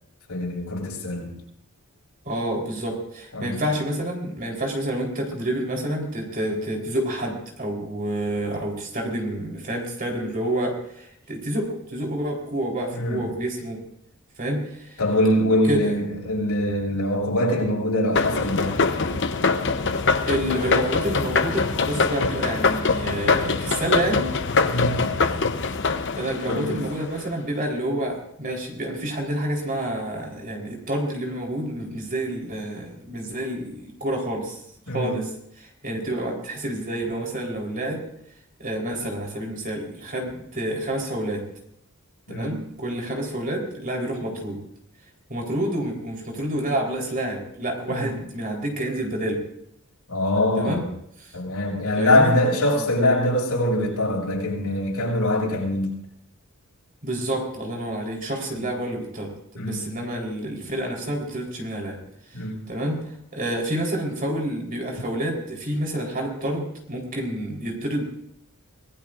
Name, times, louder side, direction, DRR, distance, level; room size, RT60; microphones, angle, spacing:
voice 1, 0.3-1.3 3.3-3.6 12.9-13.3 15.0-18.8 24.7-25.1 26.5-26.8 34.9-35.2 42.3-42.6 47.9-48.1 50.1-50.9 51.3-56.0 58.6-58.7 59.6-59.8 62.3-62.6, left 1 dB, 85° left, -2 dB, 6.7 m, -23 dB
voice 2, 2.3-13.8 14.4-15.0 15.7-15.9 20.3-24.3 26.1-34.6 34.9-35.3 35.6-38.0 38.6-41.4 42.3-44.6 45.3-49.4 50.6-50.9 51.2-51.3 52.0-52.3 52.7-52.9 57.0-62.0 62.3-62.4 62.7-68.0, right 1 dB, 40° right, 0 dB, 4.1 m, -28 dB
sound 1, 18.1-27.2, left 4 dB, 55° left, 0.9 m, -23 dB
25.5 x 18.5 x 2.6 m, 0.75 s
head